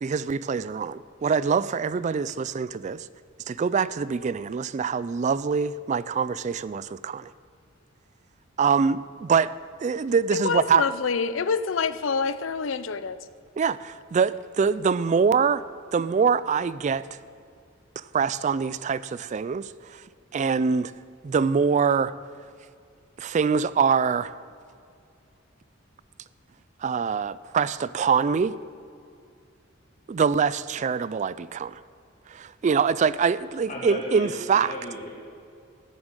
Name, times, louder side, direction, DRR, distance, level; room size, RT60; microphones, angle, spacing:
voice 1, 0.0-3.1 3.5-7.3 8.6-9.5 9.8-10.8 13.6-15.6 15.9-17.0 18.0-20.0 20.3-20.9 21.2-22.1 23.2-24.3 26.8-28.6 30.1-31.8 32.3-34.7, right 6 dB, 35° right, 17 dB, 0.3 m, -24 dB
voice 2, 10.3-13.2, left 5 dB, 75° left, 14 dB, 0.6 m, -26 dB
voice 3, 33.6-35.1, left 1 dB, 40° left, -4 dB, 3.1 m, -35 dB
14.0 x 7.2 x 9.0 m, 2.4 s
head